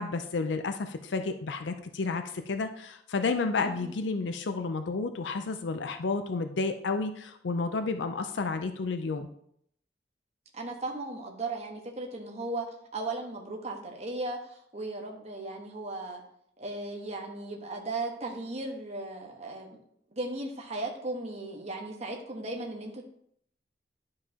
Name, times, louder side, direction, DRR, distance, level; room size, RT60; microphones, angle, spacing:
voice 1, 0.0-9.3, left 4 dB, 90° left, 8 dB, 0.5 m, -31 dB
voice 2, 10.5-12.7 12.9-16.2 16.6-19.8 20.1-23.1, right 2 dB, 40° right, 1 dB, 1.2 m, -36 dB
11.0 x 4.7 x 2.8 m, 0.69 s
head